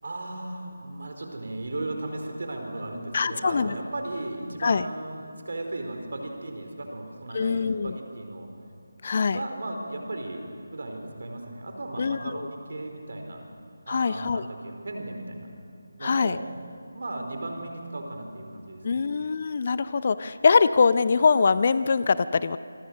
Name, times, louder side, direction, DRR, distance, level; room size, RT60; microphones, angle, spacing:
voice 1, 0.0-8.5 9.3-13.5 13.9-15.5 16.0-16.5 16.9-19.0, right 2 dB, 50° right, 4 dB, 4.4 m, -36 dB
voice 2, 3.1-3.7 4.6-4.9 7.3-8.0 9.0-9.4 12.0-12.4 13.9-14.4 16.0-16.4 18.8-22.6, left 5 dB, 35° left, 15 dB, 0.6 m, -23 dB
27.0 x 23.5 x 6.6 m, 2.3 s
figure-of-eight pair, 155°, 0 cm